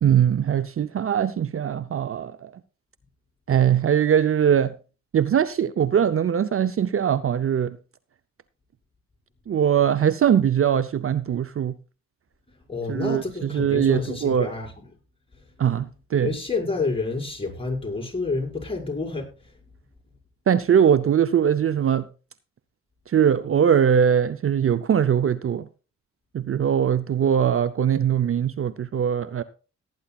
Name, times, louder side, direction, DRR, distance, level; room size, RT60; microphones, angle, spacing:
voice 1, 0.0-2.5 3.5-4.8 5.1-7.8 9.5-11.7 12.9-14.5 15.6-16.3 20.5-22.1 23.1-25.7 26.3-29.4, right 8 dB, 45° right, 0.6 m, -21 dB
voice 2, 12.7-14.7 16.1-19.3, left 3 dB, 20° left, 5.4 m, -28 dB
18.0 x 9.6 x 2.4 m
cardioid pair, 55°, 30 cm